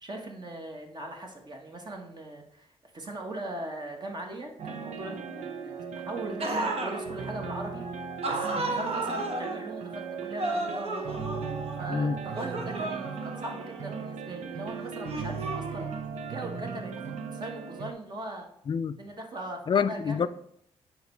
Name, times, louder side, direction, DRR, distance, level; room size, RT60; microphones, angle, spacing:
voice 1, 0.0-2.7 2.9-11.5 11.8-18.5 19.0-20.3, right 1 dB, 40° right, 1.3 m, -40 dB
sound 1, 4.6-17.9, right 5 dB, 80° right, 0.7 m, -37 dB
sound 2, 6.4-7.0 8.2-9.6 10.4-11.9 12.4-14.1 15.0-16.1, right 2 dB, 60° right, 1.2 m, -33 dB
voice 2, 18.7-19.0 19.7-20.3, left 7 dB, 40° left, 0.4 m, -26 dB
9.1 x 3.1 x 4.5 m
cardioid pair, 80°, 12 cm